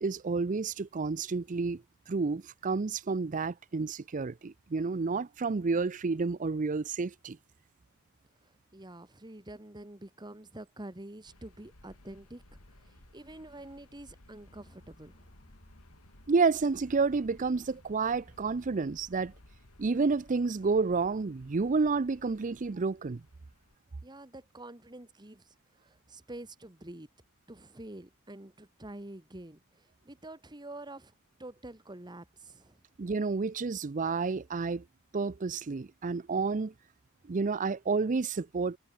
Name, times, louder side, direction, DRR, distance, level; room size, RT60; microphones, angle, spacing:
voice 1, 0.0-1.8 2.1-7.4 16.3-19.3 19.8-23.2 33.0-34.8 35.1-36.7 37.3-38.8, right 4 dB, 35° right, 0.5 m, -30 dB
voice 2, 8.7-12.4 12.7-15.3 24.0-27.1 27.5-31.1 31.4-32.8, right 1 dB, 20° right, 1.6 m, -47 dB
sound 1, 11.2-23.8, left 1 dB, 85° left, 3.0 m, -59 dB
sound 2, 14.5-22.5, left 1 dB, 40° left, 5.7 m, -65 dB
head